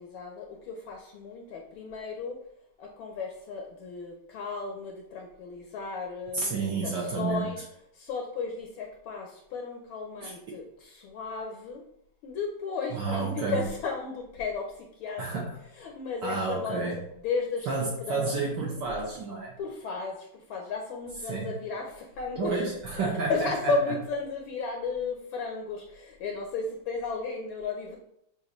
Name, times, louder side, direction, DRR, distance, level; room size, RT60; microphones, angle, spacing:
voice 1, 0.0-2.4 2.8-7.7 7.9-11.8 12.2-15.4 15.8-16.8 17.2-18.4 19.0-19.1 19.6-22.6 22.9-28.0, left 4 dB, 75° left, 1 dB, 1.3 m, -34 dB
voice 2, 6.3-7.5 10.2-10.6 12.9-13.6 15.2-15.5 16.2-17.0 17.7-19.5 21.3-21.6 22.4-23.7, right 4 dB, 65° right, -3 dB, 1.2 m, -30 dB
6.5 x 2.5 x 3.0 m, 0.74 s
omnidirectional pair, 2.4 m